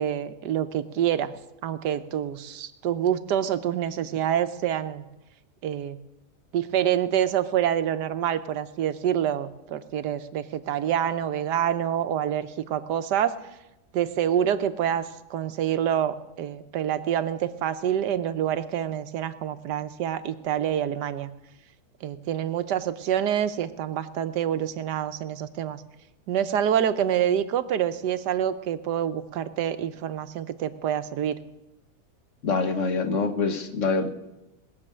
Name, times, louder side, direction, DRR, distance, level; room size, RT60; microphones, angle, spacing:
voice 1, 0.0-1.3 1.6-5.0 5.6-6.0 6.5-13.3 13.9-21.3 22.0-25.8 26.3-31.3, right 10 dB, 80° right, 11 dB, 1.4 m, -27 dB
voice 2, 32.4-34.1, left 4 dB, 50° left, 8 dB, 1.4 m, -25 dB
20.0 x 7.0 x 8.7 m, 0.96 s
omnidirectional pair, 1.8 m